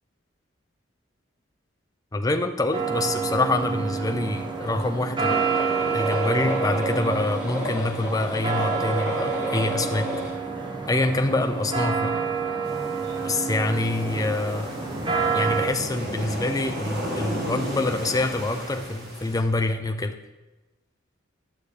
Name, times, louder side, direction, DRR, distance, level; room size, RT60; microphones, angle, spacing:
voice 1, 2.1-10.1 10.9-12.1 13.2-14.8 15.3-20.1, left 2 dB, 20° left, 6 dB, 0.5 m, -26 dB
sound 1, 2.7-15.7, right 5 dB, 25° right, 0.7 m, -28 dB
sound 2, 5.2-10.3, left 1 dB, 5° right, 2.7 m, -31 dB
sound 3, 12.6-19.4, equal, 55° right, 1.8 m, -34 dB
12.0 x 6.7 x 3.3 m, 1.1 s
head